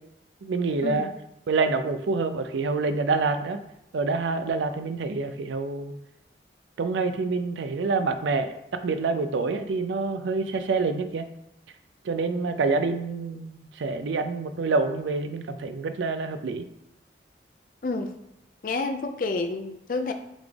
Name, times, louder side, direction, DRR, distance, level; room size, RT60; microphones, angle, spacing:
voice 1, 0.4-1.1 1.5-3.6 3.9-5.9 6.8-11.3 12.0-16.7, right 4 dB, 85° right, 9 dB, 0.4 m, -27 dB
voice 2, 17.8-18.1 18.6-20.1, left 3 dB, 50° left, 6 dB, 0.4 m, -29 dB
4.0 x 3.4 x 3.3 m, 0.81 s
head